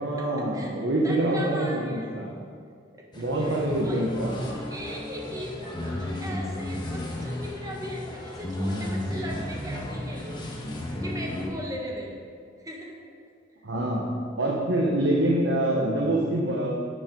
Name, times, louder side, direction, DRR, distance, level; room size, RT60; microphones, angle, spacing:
voice 1, 0.0-2.3 3.1-4.4 13.6-16.7, right 1 dB, 75° right, -2 dB, 1.2 m, -25 dB
voice 2, 0.5-2.2 2.9-4.0 4.7-10.5 11.0-12.2 12.6-13.2, equal, 20° right, -1 dB, 1.5 m, -38 dB
sound 1, 3.1-11.5, left 1 dB, 25° left, 1.4 m, -33 dB
10.0 x 6.8 x 5.3 m, 2.1 s
head